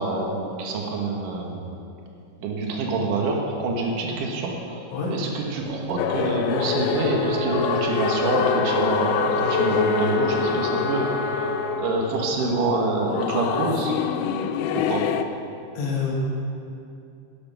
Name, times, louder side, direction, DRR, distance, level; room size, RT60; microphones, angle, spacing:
voice 1, 0.0-1.7 2.4-4.8 5.1-13.9 14.7-15.1, right 3 dB, 75° right, 0 dB, 1.9 m, -26 dB
sound 1, 5.6-14.7, left 3 dB, 55° right, 3.6 m, -40 dB
sound 2, 6.0-15.2, left 8 dB, 90° left, 2.5 m, -26 dB
sound 3, 6.9-11.7, equal, 20° right, 1.8 m, -29 dB
voice 2, 15.8-16.2, left 5 dB, 70° left, -4 dB, 4.6 m, -28 dB
11.5 x 11.0 x 6.1 m, 2.6 s
omnidirectional pair, 5.7 m